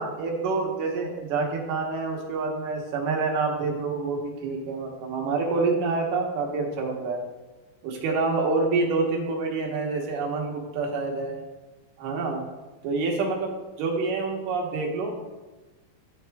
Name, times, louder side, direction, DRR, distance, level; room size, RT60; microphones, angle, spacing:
voice 1, 0.0-7.2 7.8-11.4 12.0-12.4 12.8-13.5 13.8-15.1, right 3 dB, 70° right, 0 dB, 2.5 m, -27 dB
12.5 x 4.3 x 3.4 m, 1.2 s
omnidirectional pair, 4.3 m